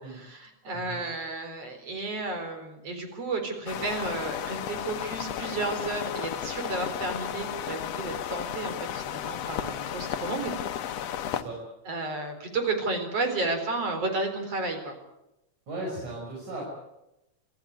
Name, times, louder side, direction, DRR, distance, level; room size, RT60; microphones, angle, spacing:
voice 1, 0.0-10.5 11.9-14.9, right 3 dB, 55° right, 6 dB, 5.1 m, -32 dB
sound 1, 3.7-11.4, left 10 dB, 65° left, 2.0 m, -34 dB
voice 2, 15.7-16.6, right 2 dB, 70° right, -2 dB, 7.1 m, -37 dB
26.0 x 14.5 x 9.5 m, 0.90 s
omnidirectional pair, 3.4 m